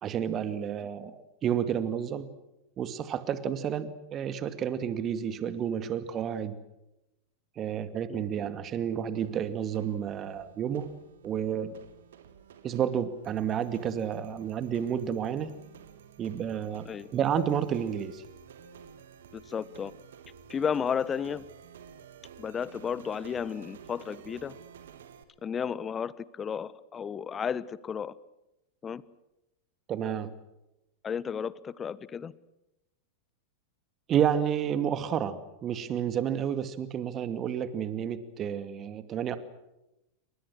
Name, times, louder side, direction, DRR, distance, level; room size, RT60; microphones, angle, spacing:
voice 1, 0.0-2.3 2.8-6.6 7.6-10.9 11.2-11.8 12.6-15.5 16.2-18.2 29.9-30.3 34.1-39.4, right 9 dB, 30° right, 12 dB, 2.3 m, -30 dB
sound 1, 9.2-25.2, right 7 dB, 60° right, 2.6 m, -52 dB
voice 2, 19.3-19.9 20.5-21.5 22.4-24.6 25.4-28.2 28.8-29.0 31.0-32.3, left 7 dB, 20° left, 20 dB, 1.1 m, -33 dB
29.0 x 26.0 x 6.3 m, 0.91 s
figure-of-eight pair, 90°, 0 cm